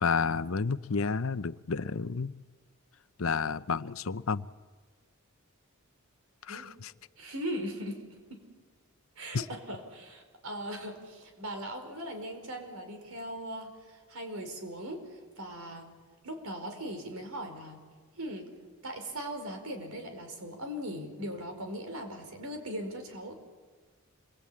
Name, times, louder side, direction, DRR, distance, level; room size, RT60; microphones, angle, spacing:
voice 1, 0.0-2.3 3.2-4.5 6.5-6.9 9.3-9.4, left 5 dB, 65° left, 0.7 m, -30 dB
voice 2, 7.2-8.0 8.3-8.4 9.2-15.9 16.2-17.8 18.2-18.5 18.8-23.3, equal, 90° right, 5.0 m, -39 dB
27.5 x 23.0 x 8.8 m
head